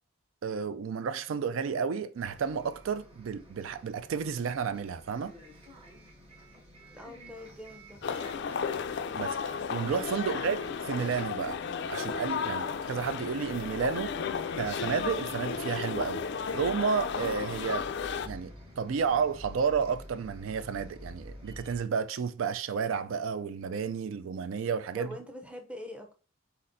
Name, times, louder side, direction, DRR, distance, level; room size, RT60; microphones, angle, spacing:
voice 1, 0.4-5.3 9.1-10.6 10.9-11.6 11.9-14.1 14.6-17.9 18.3-25.1, right 6 dB, 70° right, 0.4 m, -31 dB
Bus, 2.1-21.8, equal, 25° right, 1.1 m, -50 dB
voice 2, 6.9-8.0 24.9-26.1, left 1 dB, 5° right, 0.5 m, -44 dB
sound 1, 8.0-18.3, left 6 dB, 55° left, 0.3 m, -34 dB
4.2 x 4.1 x 2.6 m
head